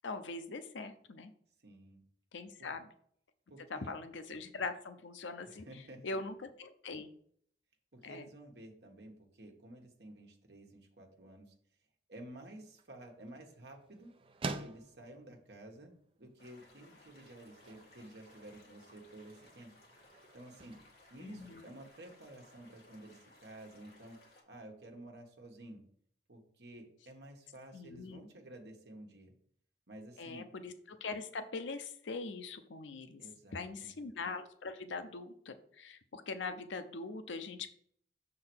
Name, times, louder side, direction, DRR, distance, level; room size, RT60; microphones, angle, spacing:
voice 1, 0.0-1.3 2.3-2.9 3.7-5.7 6.0-7.1 8.0-8.2 21.2-21.6 27.7-28.2 30.2-33.2 33.5-37.7, left 3 dB, 85° left, 10 dB, 0.6 m, -42 dB
voice 2, 1.6-2.0 2.6-2.7 3.5-3.9 5.4-6.0 7.9-11.5 12.1-14.1 14.5-15.9 16.2-19.7 20.3-20.8 21.1-24.2 24.5-25.8 26.3-29.3 29.9-30.4 33.2-33.9, right 1 dB, 65° right, 2 dB, 1.4 m, -52 dB
sound 1, 12.4-22.1, right 3 dB, 30° right, 0.4 m, -49 dB
sound 2, 16.4-24.4, left 1 dB, 55° left, 1.8 m, -62 dB
6.6 x 3.8 x 6.1 m, 0.64 s
head